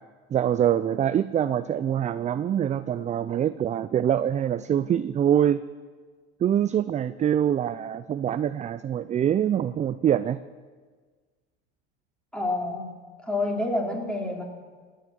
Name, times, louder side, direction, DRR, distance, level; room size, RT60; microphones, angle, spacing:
voice 1, 0.3-5.6 6.4-10.4, right 10 dB, 25° right, 14 dB, 0.4 m, -24 dB
voice 2, 12.3-12.9 13.2-14.4, left 2 dB, 5° left, 0 dB, 3.2 m, -28 dB
18.0 x 6.6 x 8.8 m, 1.5 s
hypercardioid pair, 80°, 32 cm